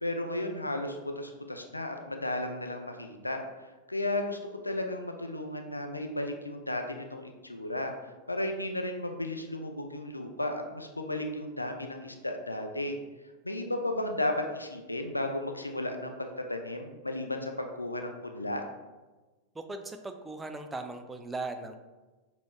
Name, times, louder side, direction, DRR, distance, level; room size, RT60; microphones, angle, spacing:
voice 1, 0.0-4.4 4.6-13.0 13.4-18.6, left 1 dB, 85° left, 4 dB, 0.4 m, -34 dB
voice 2, 19.5-21.8, right 3 dB, 10° right, 7 dB, 0.4 m, -38 dB
6.1 x 3.0 x 2.3 m, 1.2 s
figure-of-eight pair, 90°, 0 cm